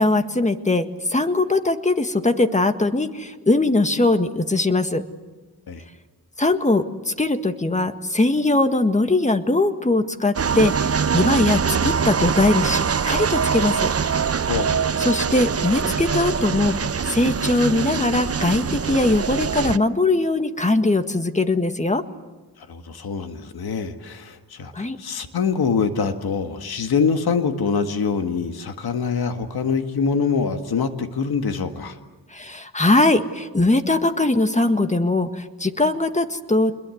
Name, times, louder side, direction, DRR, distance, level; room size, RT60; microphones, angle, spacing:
voice 1, 0.0-5.0 6.4-13.9 15.0-16.8 17.0-22.0 24.7-25.0 32.3-36.8, left 2 dB, 20° left, 8 dB, 1.8 m, -21 dB
sound 1, 10.4-19.8, right 6 dB, 40° right, 0.8 m, -23 dB
voice 2, 14.5-14.9 22.6-32.0, left 5 dB, 80° left, 7 dB, 1.9 m, -24 dB
28.0 x 22.0 x 7.9 m, 1.2 s
cardioid pair, 70°, 36 cm